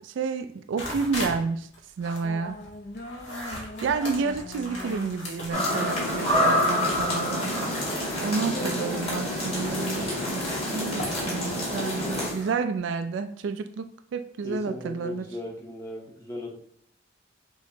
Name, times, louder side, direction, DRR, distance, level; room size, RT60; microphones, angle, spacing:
voice 1, 0.0-1.7 2.0-2.6 3.8-7.5 8.2-10.1 10.7-15.3, right 5 dB, 70° right, 9 dB, 0.3 m, -30 dB
Taking snacks out of box, 0.8-1.4 1.7-6.5 6.8-12.6, equal, 85° left, 1.4 m, -39 dB
sound 1, 2.2-12.2, left 2 dB, 50° left, 0.5 m, -41 dB
sound 2, 5.5-12.3, left 1 dB, 30° left, 1.6 m, -27 dB
voice 2, 6.2-6.7 8.4-9.2 14.4-16.6, equal, 15° left, 0 dB, 0.8 m, -37 dB
6.2 x 2.9 x 2.7 m, 0.65 s
head